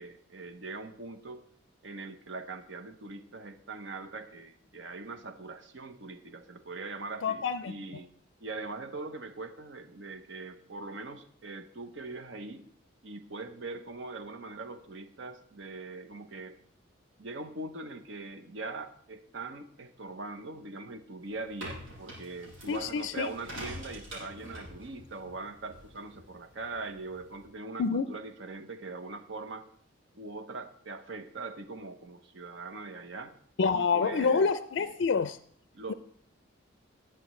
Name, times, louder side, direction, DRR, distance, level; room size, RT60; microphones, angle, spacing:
voice 1, 0.0-1.4 1.8-8.1 8.4-12.7 13.0-16.6 17.2-29.7 30.1-33.3 33.7-34.5 34.8-35.0 35.7-35.9, right 3 dB, 65° right, 0.9 m, -41 dB
voice 2, 7.2-7.7 22.7-23.3 27.8-28.1 33.6-35.4, left 5 dB, 60° left, 0.4 m, -27 dB
sound 1, 21.2-27.5, equal, 80° right, 5.8 m, -46 dB
19.0 x 7.7 x 3.1 m
head